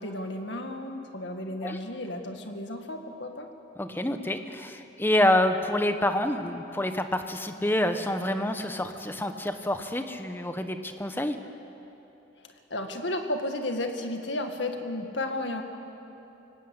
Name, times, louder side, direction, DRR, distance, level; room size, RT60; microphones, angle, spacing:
voice 1, 0.0-3.5 12.4-15.6, left 1 dB, 70° left, 5 dB, 2.0 m, -33 dB
voice 2, 3.8-11.4, left 1 dB, 10° left, 7 dB, 1.0 m, -27 dB
25.0 x 18.5 x 8.1 m, 3.0 s
head